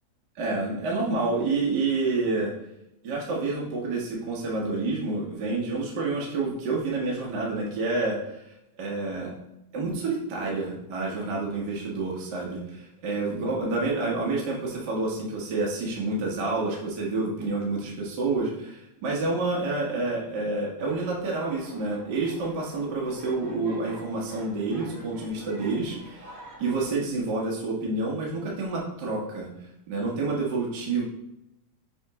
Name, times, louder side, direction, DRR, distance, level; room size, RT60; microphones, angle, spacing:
voice 1, 0.3-2.5 3.0-8.4 8.8-9.3 9.7-29.5 29.9-31.0, right 3 dB, 60° right, -3 dB, 1.1 m, -28 dB
sound 1, 20.8-26.9, right 1 dB, 40° right, 1.4 m, -48 dB
7.2 x 4.4 x 3.6 m, 0.85 s
omnidirectional pair, 4.2 m